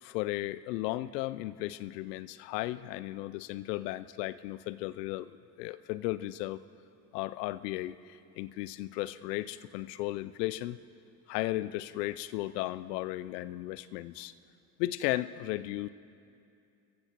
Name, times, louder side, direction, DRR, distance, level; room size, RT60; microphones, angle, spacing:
voice 1, 0.0-6.6 7.1-10.8 11.3-14.3 14.8-15.9, left 16 dB, 75° left, 16 dB, 0.6 m, -35 dB
27.5 x 15.0 x 2.9 m, 2.5 s
hypercardioid pair, 55°, 49 cm